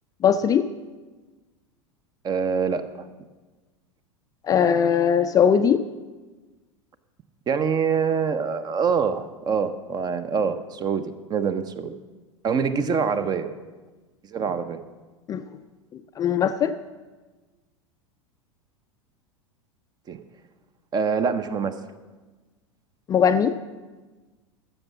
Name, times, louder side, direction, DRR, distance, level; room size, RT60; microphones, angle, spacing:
voice 1, 0.2-0.7 4.5-5.8 15.3-15.4 16.2-16.7 23.1-23.6, left 8 dB, 20° left, 9 dB, 0.4 m, -20 dB
voice 2, 2.2-3.1 7.5-11.9 12.4-13.5 14.3-14.8 20.1-20.2 20.9-21.8, right 6 dB, 25° right, 12 dB, 0.7 m, -25 dB
14.0 x 7.0 x 6.2 m, 1.3 s
figure-of-eight pair, 85°, 17 cm